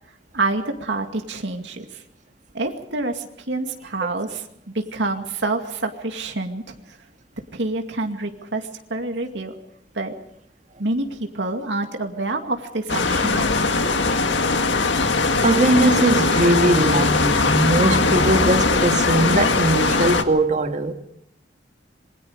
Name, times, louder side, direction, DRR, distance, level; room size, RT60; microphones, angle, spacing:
voice 1, 0.3-2.0 2.5-7.0 7.5-9.5 9.9-10.1 10.8-13.5, right 2 dB, 75° right, 2.3 m, -27 dB
sound 1, 12.9-20.2, left 3 dB, 85° left, 1.9 m, -20 dB
voice 2, 15.4-20.9, right 1 dB, 45° right, 2.0 m, -20 dB
27.0 x 22.0 x 5.0 m
head